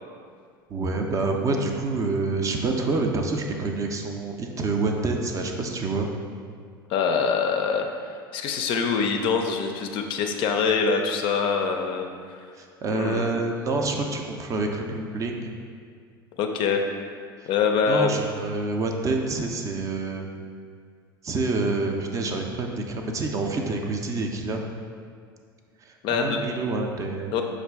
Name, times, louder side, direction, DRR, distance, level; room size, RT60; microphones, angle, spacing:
voice 1, 0.7-6.1 12.6-15.5 17.9-20.3 21.2-24.6 25.9-27.3, right 3 dB, 25° right, 3 dB, 0.4 m, -27 dB
voice 2, 6.9-12.4 12.9-13.3 16.4-16.8 17.5-18.1 26.0-26.4 27.3-27.4, left 6 dB, 45° left, 4 dB, 0.4 m, -24 dB
5.7 x 2.4 x 3.3 m, 2.1 s
figure-of-eight pair, 70°, 12 cm